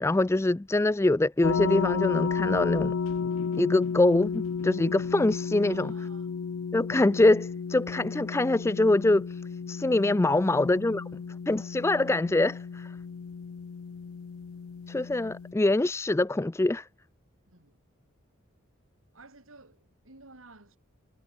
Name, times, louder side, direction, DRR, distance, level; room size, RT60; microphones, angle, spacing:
voice 1, 0.0-2.9 3.6-5.9 6.7-9.4 9.7-11.0 11.5-12.9 14.9-16.9, left 2 dB, 15° left, 0.3 m, -24 dB
sound 1, 1.4-15.5, left 6 dB, 80° left, 0.5 m, -33 dB
voice 2, 5.6-6.4 10.3-11.2 17.5-17.8 19.1-20.8, right 3 dB, 80° right, 4.5 m, -54 dB
head